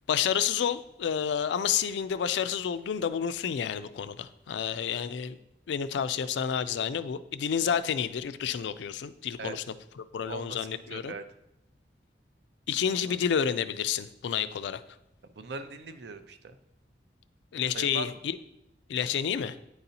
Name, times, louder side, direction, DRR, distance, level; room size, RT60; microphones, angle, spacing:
voice 1, 0.1-5.4 5.7-9.6 10.0-11.1 12.7-14.8 17.5-18.4 18.9-19.6, left 8 dB, 80° left, 13 dB, 0.3 m, -30 dB
voice 2, 10.3-11.2 13.0-13.2 15.4-16.6 17.6-18.1, right 3 dB, 70° right, 10 dB, 0.5 m, -40 dB
9.6 x 4.0 x 2.8 m, 0.83 s
head